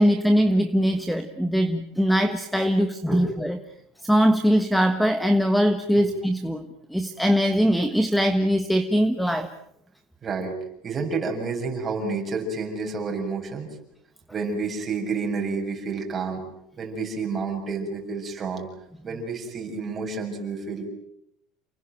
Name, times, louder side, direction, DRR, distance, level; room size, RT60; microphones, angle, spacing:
voice 1, 0.0-3.6 4.0-6.6 6.9-9.5, equal, ahead, 10 dB, 1.3 m, -21 dB
voice 2, 10.2-10.5 10.8-13.7 14.3-16.4 16.8-18.7 19.0-20.8, right 4 dB, 20° right, 2 dB, 6.8 m, -29 dB
29.5 x 21.0 x 9.3 m, 0.75 s
cardioid pair, 165°, 0 cm